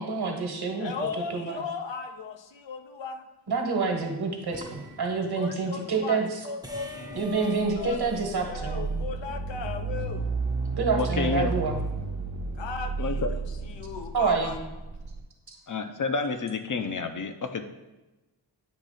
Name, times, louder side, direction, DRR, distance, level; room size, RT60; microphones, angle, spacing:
voice 1, 0.0-1.6 3.5-6.5 7.1-8.9 10.7-11.8 14.1-14.5, right 4 dB, 60° right, 1.3 m, -28 dB
voice 2, 0.8-3.3 5.4-8.0 8.4-10.3 12.6-14.6, left 5 dB, 85° left, 0.8 m, -37 dB
sound 1, 4.5-5.4 6.6-9.4, left 2 dB, 10° right, 0.6 m, -44 dB
sound 2, 7.4-15.2, right 4 dB, 90° right, 1.0 m, -32 dB
voice 3, 10.9-11.5 13.0-13.3 15.7-17.6, left 4 dB, 45° left, 0.6 m, -29 dB
8.8 x 3.0 x 5.6 m
wide cardioid pair, 125°, 43 cm